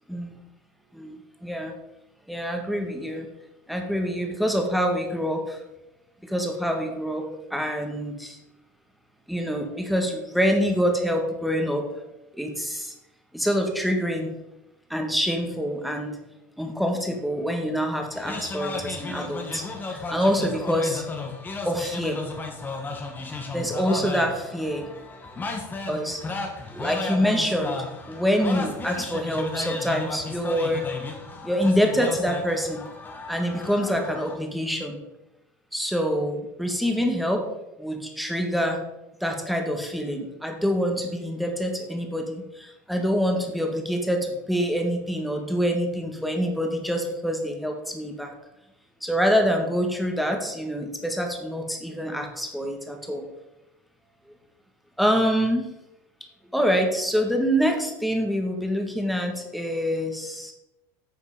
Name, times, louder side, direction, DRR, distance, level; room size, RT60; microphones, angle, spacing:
voice 1, 1.4-1.7 2.3-3.3 3.7-5.6 6.2-8.4 9.3-11.9 12.4-12.9 13.3-14.3 14.9-16.2 16.6-19.6 19.9-21.0 21.6-22.2 23.5-24.8 25.9-26.2 26.7-30.9 31.4-32.8 33.3-35.0 35.7-37.4 37.8-38.8 39.2-42.4 42.9-48.3 49.0-53.2 55.0-55.7 56.5-60.5, equal, ahead, 3 dB, 1.9 m, -26 dB
sound 1, 18.1-34.4, left 3 dB, 20° left, 1.7 m, -34 dB
10.0 x 6.5 x 5.1 m, 0.91 s
supercardioid pair, 120°, 10 cm